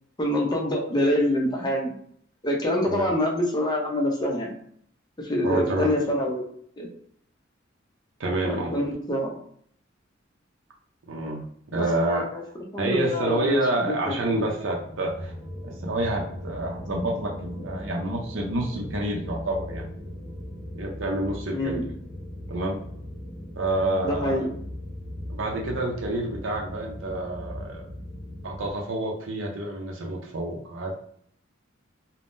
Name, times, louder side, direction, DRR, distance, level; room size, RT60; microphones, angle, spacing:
voice 1, 0.2-2.0 2.4-4.5 5.2-6.5 6.8-6.9 8.4-9.4 11.7-12.4 12.7-13.5 14.0-14.1 21.5-21.8 24.0-24.5, left 1 dB, 20° left, -1 dB, 0.7 m, -26 dB
voice 2, 5.4-5.9 8.2-8.8 11.1-11.4 11.7-12.2 12.8-15.3 15.6-19.8 20.8-21.8 22.5-22.8 23.5-24.4 25.3-27.8 28.4-31.0, right 1 dB, 75° right, 0 dB, 0.6 m, -28 dB
sound 1, 13.8-28.7, left 1 dB, 30° right, 0.8 m, -39 dB
3.5 x 2.1 x 2.6 m, 0.65 s
head